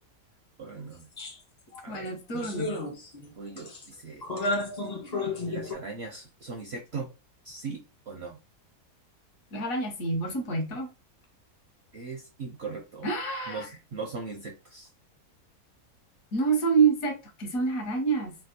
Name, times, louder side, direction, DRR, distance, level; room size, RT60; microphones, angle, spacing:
voice 1, 0.6-1.1 1.8-2.1 3.3-4.3 5.5-7.1 7.4-8.4 11.9-13.1 13.5-14.9, right 4 dB, 65° right, 1 dB, 0.6 m, -39 dB
sound 1, 1.2-1.4 1.7-1.8 2.3-3.3 3.6-3.9 4.2-5.7, left 2 dB, 50° left, 0.5 m, -32 dB
voice 2, 1.9-2.8 9.5-10.9 13.0-13.7 16.3-18.4, right 4 dB, 65° left, 3 dB, 1.2 m, -27 dB
3.3 x 2.3 x 2.7 m, 0.30 s
omnidirectional pair, 1.7 m